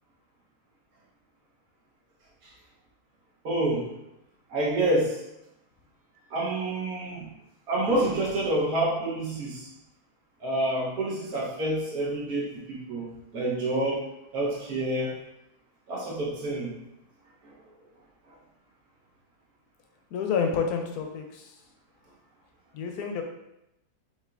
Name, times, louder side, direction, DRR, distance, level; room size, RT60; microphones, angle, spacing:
voice 1, 3.4-3.9 4.5-5.2 6.3-7.3 7.7-9.7 10.4-13.1 13.3-14.0 14.3-15.2 15.9-16.7 17.4-17.5, right 1 dB, 65° right, -5 dB, 1.6 m, -28 dB
voice 2, 20.1-21.6 22.7-23.2, left 6 dB, 75° left, 3 dB, 1.0 m, -29 dB
5.5 x 2.8 x 2.5 m, 0.87 s
omnidirectional pair, 1.8 m